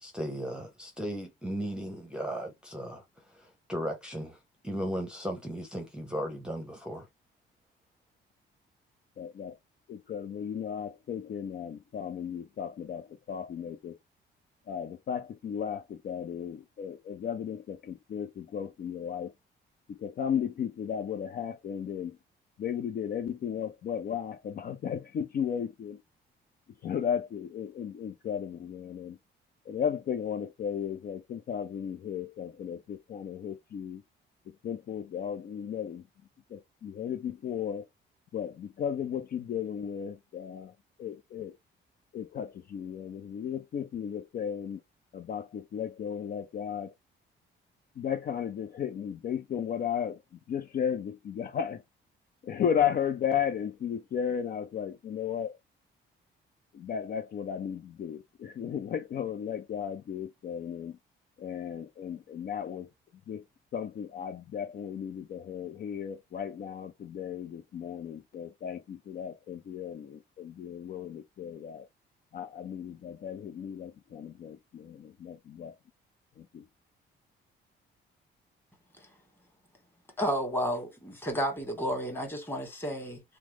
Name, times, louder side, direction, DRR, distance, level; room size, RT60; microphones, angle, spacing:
voice 1, 0.0-4.4 4.6-7.1, equal, 5° right, 0.8 m, -36 dB
voice 2, 9.2-9.6 9.9-14.0 14.7-19.3 19.9-22.2 22.6-26.0 26.8-29.2 29.7-34.0 34.6-36.1 36.5-37.9 38.3-40.7 41.0-41.6 42.1-44.8 45.1-46.9 48.0-51.8 52.4-55.6 56.7-61.0 61.4-62.9 63.3-63.4 63.7-71.9 72.3-75.8 76.4-76.7, left 8 dB, 50° left, 0.5 m, -35 dB
voice 3, 80.2-83.2, equal, 10° left, 1.7 m, -32 dB
3.0 x 2.1 x 3.3 m
cardioid pair, 90°, 20 cm